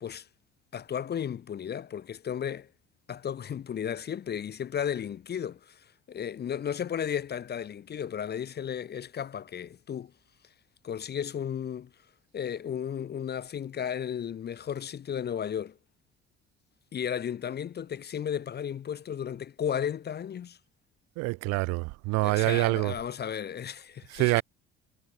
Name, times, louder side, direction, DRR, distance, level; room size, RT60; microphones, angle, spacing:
voice 1, 0.7-2.7 3.1-10.1 10.8-11.9 12.3-15.8 16.9-20.6 22.2-24.4, left 8 dB, 30° left, 0.7 m, -34 dB
voice 2, 21.2-22.9 24.1-24.4, right 25 dB, 55° right, 0.4 m, -26 dB
figure-of-eight pair, 50°, 31 cm